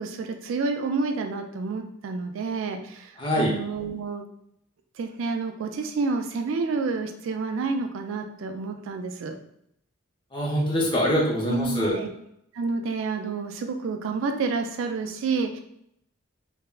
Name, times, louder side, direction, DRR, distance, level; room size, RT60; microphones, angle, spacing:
voice 1, 0.0-4.3 5.0-9.4 11.5-12.1 12.5-15.6, right 4 dB, 65° right, 5 dB, 0.3 m, -29 dB
voice 2, 3.2-3.5 10.3-12.0, equal, 20° left, -3 dB, 0.5 m, -24 dB
3.4 x 2.0 x 2.3 m, 0.74 s
head